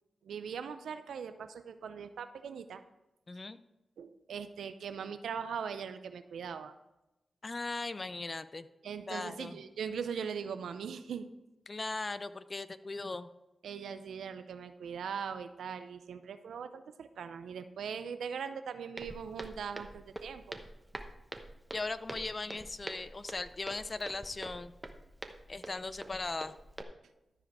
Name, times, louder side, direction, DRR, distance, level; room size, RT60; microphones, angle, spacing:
voice 1, 0.2-2.8 4.0-6.7 8.8-11.3 13.6-20.6, right 7 dB, 90° right, 10 dB, 0.5 m, -40 dB
voice 2, 3.3-3.6 7.4-8.7 9.1-9.6 11.7-13.3 21.7-24.7 25.5-26.5, left 3 dB, 40° left, 13 dB, 0.5 m, -38 dB
Walk footsteps, 19.0-26.8, right 1 dB, 15° right, 1.0 m, -46 dB
13.0 x 5.0 x 4.8 m, 0.96 s
cardioid pair, 45°, 0 cm